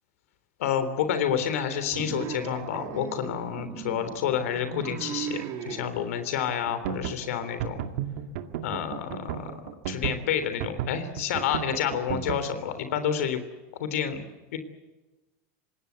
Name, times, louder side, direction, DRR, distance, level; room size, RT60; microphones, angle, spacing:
voice 1, 0.6-7.8 8.6-9.6 9.9-13.4 13.7-14.2 14.5-14.6, left 8 dB, 85° left, 10 dB, 3.4 m, -29 dB
sound 1, 1.9-5.9, right 8 dB, 45° right, 3.3 m, -37 dB
sound 2, 6.5-12.4, right 11 dB, 70° right, 2.1 m, -33 dB
26.0 x 20.0 x 8.4 m, 1.1 s
supercardioid pair, 145°, 7 cm